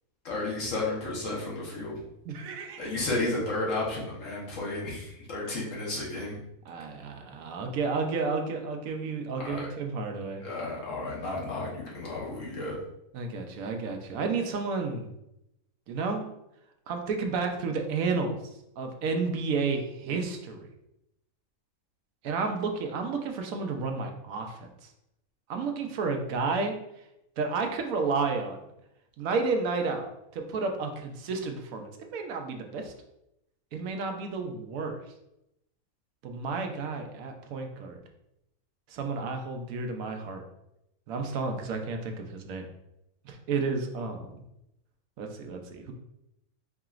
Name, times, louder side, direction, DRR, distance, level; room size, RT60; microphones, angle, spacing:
voice 1, 0.2-2.0 2.8-6.4 9.4-9.7 10.4-12.7, left 2 dB, 60° left, -4 dB, 1.4 m, -32 dB
voice 2, 2.3-2.9 6.7-10.4 13.1-15.1 15.9-16.2 16.9-18.4 18.8-20.7 22.2-24.7 25.5-26.7 27.4-28.6 29.2-32.9 33.7-35.0 36.2-38.0 38.9-40.4 41.1-42.7 43.2-44.2 45.2-45.9, right 4 dB, 70° right, 4 dB, 1.0 m, -31 dB
4.8 x 2.8 x 2.4 m, 0.84 s
omnidirectional pair, 1.6 m